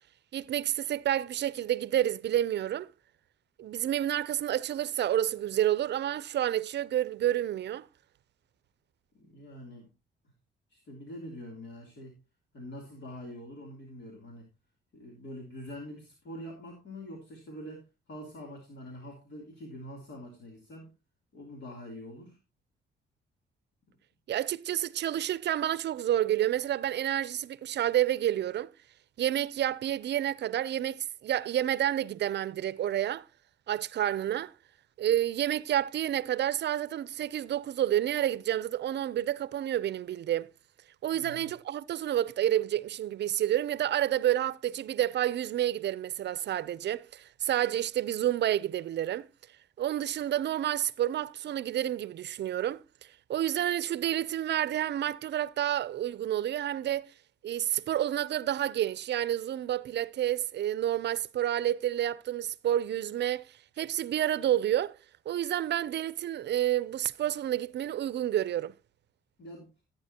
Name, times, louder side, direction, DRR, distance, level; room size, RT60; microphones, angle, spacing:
voice 1, 0.3-2.9 3.6-7.9 24.3-28.7 29.2-33.2 33.7-34.5 35.0-40.5 41.0-49.3 49.8-52.8 53.3-57.1 57.4-63.4 63.8-65.0 65.3-68.7, right 12 dB, 60° right, 0.6 m, -29 dB
voice 2, 9.1-9.9 10.7-12.2 12.5-14.5 14.9-20.9 21.3-22.4 41.1-41.4 69.4-69.7, equal, 60° left, 3.2 m, -45 dB
14.0 x 9.0 x 2.9 m
cardioid pair, 90°, 20 cm